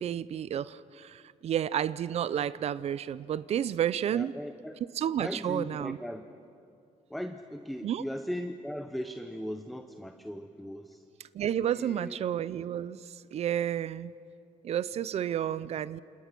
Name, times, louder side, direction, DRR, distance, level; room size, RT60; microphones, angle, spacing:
voice 1, 0.0-4.4 4.9-6.0 7.8-8.0 11.2-14.1 14.6-16.0, right 10 dB, 50° right, 17 dB, 0.5 m, -31 dB
voice 2, 4.1-4.8 5.2-6.2 7.1-11.0 11.7-12.2, equal, ahead, 7 dB, 0.8 m, -38 dB
29.0 x 27.5 x 6.1 m, 2.6 s
cardioid pair, 155°, 14 cm